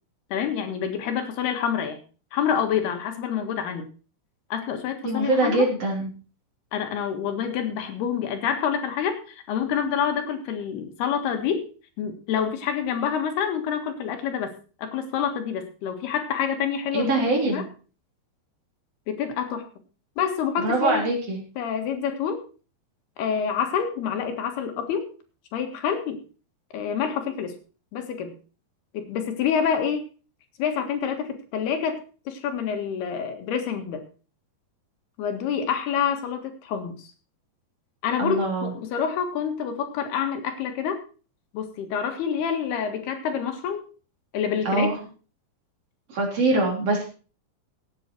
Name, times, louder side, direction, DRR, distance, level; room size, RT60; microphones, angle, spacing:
voice 1, 0.3-2.0 2.3-3.9 4.5-5.7 6.7-11.7 12.0-14.5 14.8-17.6 19.1-19.7 20.2-21.0 21.6-22.4 23.2-25.1 25.5-26.2 26.7-27.6 27.9-28.3 28.9-30.0 30.6-34.0 35.2-37.1 38.0-41.0 41.5-43.8 44.3-44.9, left 7 dB, 85° left, 6 dB, 3.7 m, -27 dB
voice 2, 5.0-6.1 16.9-17.6 20.6-21.4 38.2-38.7 44.7-45.0 46.1-47.0, right 2 dB, 40° right, 0 dB, 4.4 m, -23 dB
16.5 x 8.3 x 4.5 m, 0.36 s
omnidirectional pair, 4.4 m